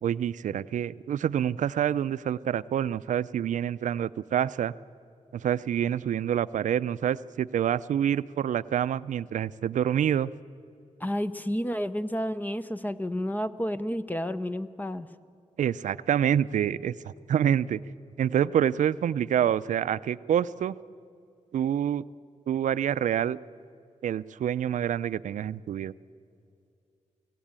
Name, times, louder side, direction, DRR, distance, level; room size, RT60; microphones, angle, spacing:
voice 1, 0.0-4.7 5.3-10.3 15.6-17.8 18.2-20.8 21.5-22.0 22.5-23.4 24.0-25.9, right 9 dB, 90° right, 16 dB, 0.5 m, -27 dB
voice 2, 11.0-15.1, equal, 15° left, 12 dB, 0.6 m, -31 dB
24.5 x 16.5 x 8.9 m, 2.5 s
wide cardioid pair, 120°, 13 cm